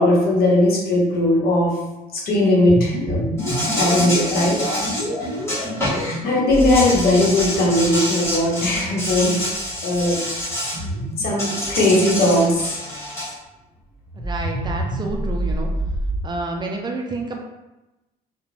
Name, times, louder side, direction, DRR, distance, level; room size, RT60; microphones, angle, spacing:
voice 1, 0.0-1.8 2.1-3.3 3.8-4.6 6.2-9.4 9.8-10.2 10.9-12.8, left 1 dB, 65° left, -3 dB, 0.9 m, -18 dB
sound 1, 2.7-12.8 14.0-16.2, equal, 40° left, 1.3 m, -29 dB
Insect, 3.4-6.1 6.5-10.8 11.4-13.3, left 1 dB, 15° left, 1.2 m, -27 dB
voice 2, 14.2-15.7 16.2-17.4, right 2 dB, 25° right, 1 dB, 0.4 m, -29 dB
2.4 x 2.1 x 3.2 m, 1.0 s
cardioid pair, 110°, 17 cm